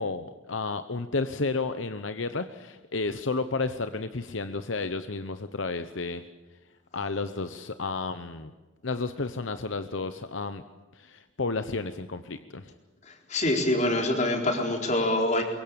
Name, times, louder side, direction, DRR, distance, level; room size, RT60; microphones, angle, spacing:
voice 1, 0.0-6.2 6.9-8.5 8.8-10.6 10.9-12.7, left 3 dB, 70° left, 10 dB, 1.0 m, -32 dB
voice 2, 13.1-15.4, left 1 dB, 35° left, 3 dB, 4.3 m, -25 dB
24.0 x 23.0 x 8.7 m, 1.2 s
head